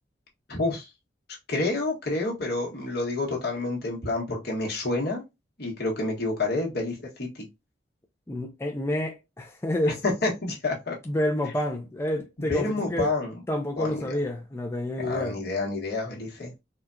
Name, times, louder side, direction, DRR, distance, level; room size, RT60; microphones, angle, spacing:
voice 1, 0.5-0.9 1.5-5.2 5.6-7.4 9.9-10.9 12.5-13.3 13.8-14.2 15.0-16.5, left 2 dB, 60° left, 1.4 m, -29 dB
voice 2, 8.3-10.0 11.1-13.1 13.5-15.4, left 1 dB, 15° left, 0.4 m, -29 dB
4.3 x 2.3 x 2.6 m
head